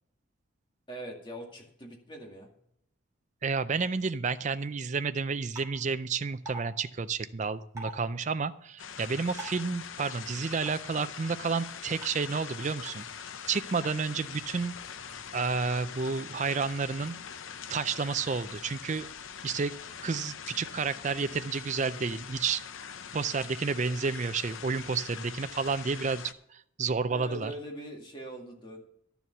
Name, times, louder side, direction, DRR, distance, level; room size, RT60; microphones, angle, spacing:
voice 1, 0.9-2.5 27.1-28.8, right 1 dB, 25° left, 0 dB, 2.2 m, -42 dB
voice 2, 3.4-13.0 13.5-14.7 15.3-17.2 17.7-19.1 19.4-19.7 20.0-22.6 23.1-27.5, right 5 dB, 35° right, 11 dB, 0.4 m, -31 dB
sound 1, 5.6-5.7 6.5-6.6 7.8-7.9 9.4-9.6 10.7-10.8 12.0-12.1, right 2 dB, 15° right, 3.0 m, -39 dB
sound 2, 8.8-26.3, left 7 dB, 70° left, 0.7 m, -43 dB
12.0 x 7.1 x 5.9 m, 0.72 s
head